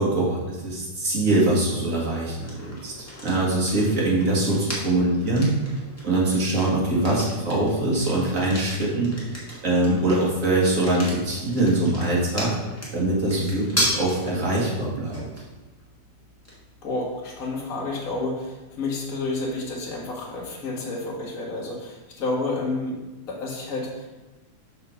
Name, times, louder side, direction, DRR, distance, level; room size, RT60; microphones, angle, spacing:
voice 1, 0.0-2.9 3.2-5.5 6.0-9.1 9.6-12.5 12.9-15.2, right 2 dB, 30° right, -4 dB, 2.0 m, -23 dB
sound 1, 2.4-20.1, equal, 10° left, 0.9 m, -36 dB
voice 2, 16.8-24.1, left 2 dB, 35° left, -3 dB, 1.5 m, -30 dB
6.0 x 4.9 x 5.7 m, 1.1 s
omnidirectional pair, 3.4 m